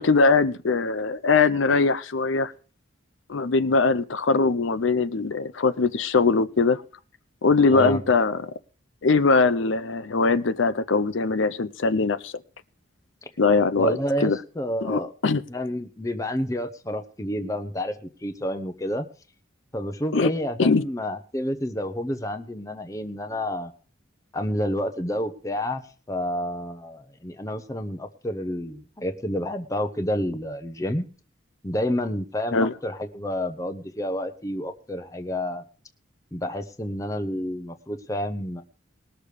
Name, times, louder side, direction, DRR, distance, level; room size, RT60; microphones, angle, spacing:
voice 1, 0.0-2.5 3.3-6.8 7.4-8.5 9.0-12.3 13.4-14.4 14.8-15.4 20.1-20.3 20.6-20.8 32.5-32.7, left 4 dB, 70° left, 14 dB, 0.6 m, -21 dB
voice 2, 7.7-8.0 13.2-13.3 13.8-15.1 15.5-19.1 19.7-23.7 24.3-25.8 26.1-31.1 31.6-35.6 36.3-38.6, left 1 dB, 15° left, 6 dB, 0.8 m, -29 dB
20.0 x 6.7 x 5.0 m, 0.38 s
head